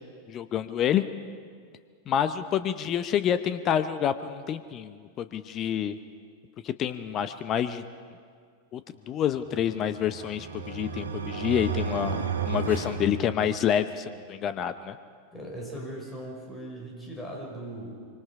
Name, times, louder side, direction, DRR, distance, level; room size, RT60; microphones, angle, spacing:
voice 1, 0.3-1.0 2.1-6.0 6.6-7.8 8.7-8.8 9.1-15.0, left 9 dB, 30° left, 12 dB, 0.8 m, -28 dB
sound 1, 9.5-13.9, right 5 dB, 70° right, 1.4 m, -33 dB
voice 2, 15.3-18.0, right 1 dB, 10° left, -1 dB, 5.7 m, -39 dB
25.0 x 24.5 x 5.0 m, 2.1 s
figure-of-eight pair, 90°, 0 cm